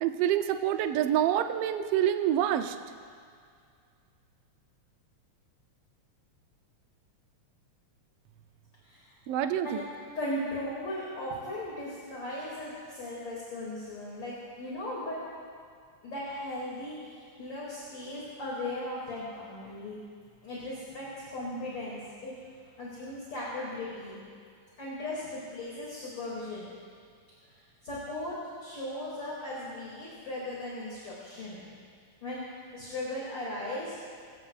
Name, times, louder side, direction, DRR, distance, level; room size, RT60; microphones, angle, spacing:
voice 1, 0.0-2.8 9.3-9.8, right 11 dB, 75° right, 8 dB, 1.4 m, -27 dB
voice 2, 10.1-15.2 16.0-20.0 20.4-22.3 22.8-24.2 24.8-26.7 27.5-31.7 32.2-32.4 32.7-33.9, left 1 dB, 40° left, -6 dB, 3.0 m, -37 dB
22.0 x 16.0 x 2.4 m, 2.2 s
omnidirectional pair, 3.4 m